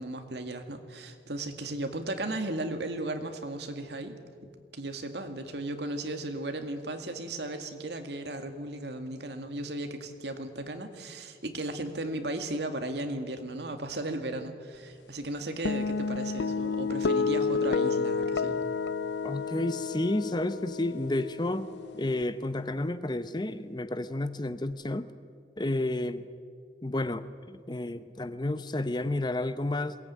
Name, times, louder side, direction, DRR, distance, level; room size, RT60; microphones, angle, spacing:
voice 1, 0.0-18.6, right 1 dB, 70° right, 6 dB, 2.1 m, -36 dB
sound 1, 15.7-22.2, left 5 dB, 80° left, 0.5 m, -30 dB
voice 2, 19.2-21.7 21.9-25.1 25.6-26.2 26.8-30.0, left 1 dB, 25° left, 12 dB, 0.7 m, -31 dB
22.0 x 18.0 x 9.5 m, 2.2 s
head